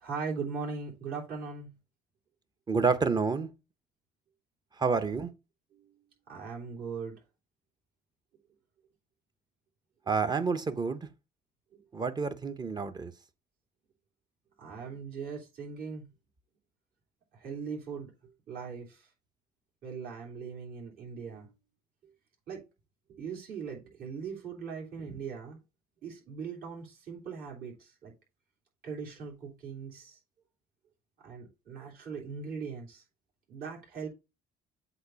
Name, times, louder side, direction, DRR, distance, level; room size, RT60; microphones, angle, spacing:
voice 1, 0.0-1.8 5.7-5.9 6.3-7.2 14.6-16.1 17.3-18.1 18.5-19.1 19.8-21.5 22.5-22.6 23.1-25.6 26.0-28.1 28.8-30.2 31.2-33.0 33.5-34.1, right 5 dB, 65° right, 3.2 m, -40 dB
voice 2, 2.7-3.5 4.8-5.3 10.1-11.1 11.9-13.1, right 5 dB, 25° right, 0.8 m, -29 dB
7.9 x 2.7 x 5.6 m
cardioid pair, 110°, 17 cm